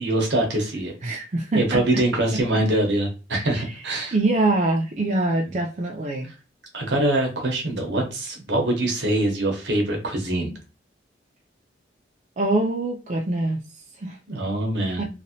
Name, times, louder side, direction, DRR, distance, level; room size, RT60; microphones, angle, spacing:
voice 1, 0.0-0.9 1.5-4.1 6.7-10.5 14.3-15.0, right 1 dB, 75° right, 2 dB, 1.0 m, -24 dB
voice 2, 1.0-1.8 2.5-2.6 3.5-3.8 4.1-6.3 12.4-14.2 15.0-15.1, right 2 dB, 40° right, -1 dB, 0.4 m, -24 dB
2.9 x 2.6 x 2.8 m, 0.32 s
head